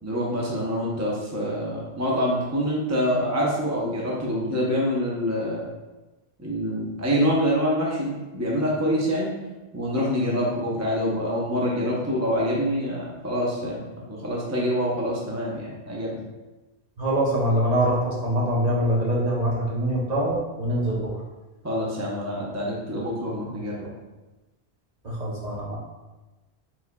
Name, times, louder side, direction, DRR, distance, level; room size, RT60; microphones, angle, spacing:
voice 1, 0.0-5.7 6.4-9.4 9.7-16.1 21.6-23.9, equal, 20° right, -4 dB, 0.6 m, -26 dB
voice 2, 17.0-21.1 25.0-25.8, right 1 dB, 40° right, -4 dB, 0.9 m, -24 dB
4.8 x 3.9 x 2.2 m, 1.1 s
omnidirectional pair, 1.1 m